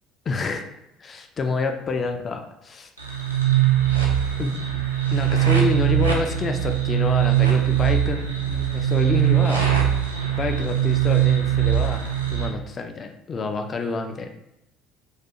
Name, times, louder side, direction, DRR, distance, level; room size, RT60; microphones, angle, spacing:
voice 1, 0.3-0.7 1.0-2.9 4.4-4.8 5.1-9.7 10.4-14.4, left 4 dB, 35° left, 5 dB, 0.3 m, -28 dB
sound 1, 3.0-12.5, right 12 dB, 85° right, 0.3 m, -21 dB
2.3 x 2.2 x 2.7 m, 0.86 s
figure-of-eight pair, 60°, 0 cm